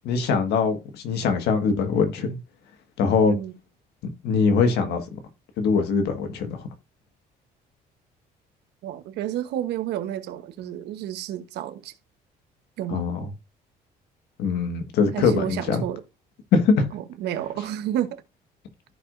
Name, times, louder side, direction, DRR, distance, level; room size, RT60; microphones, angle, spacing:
voice 1, 0.0-2.4 3.0-3.3 4.2-5.2 5.6-6.6 12.9-13.3 14.4-15.8 16.5-16.9, left 5 dB, 80° left, 1.7 m, -22 dB
voice 2, 8.8-11.9 12.8-13.1 15.1-16.0 16.9-18.2, right 11 dB, 80° right, 1.1 m, -30 dB
14.5 x 4.9 x 2.6 m
cardioid pair, 110°, 17 cm